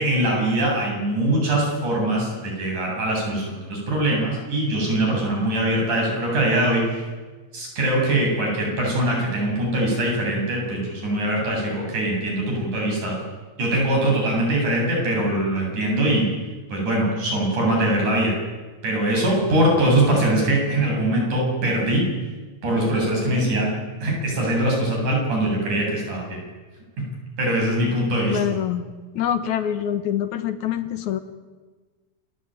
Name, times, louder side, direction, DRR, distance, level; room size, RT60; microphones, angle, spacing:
voice 1, 0.0-7.1 7.5-13.1 13.6-16.3 16.7-18.3 18.8-22.0 22.6-23.7 24.0-26.4 27.0-27.1 27.4-28.4, right 1 dB, 80° right, -1 dB, 9.5 m, -22 dB
voice 2, 28.3-28.8 29.1-31.2, left 10 dB, 75° left, 11 dB, 2.8 m, -25 dB
28.5 x 19.0 x 9.2 m, 1.4 s
omnidirectional pair, 3.4 m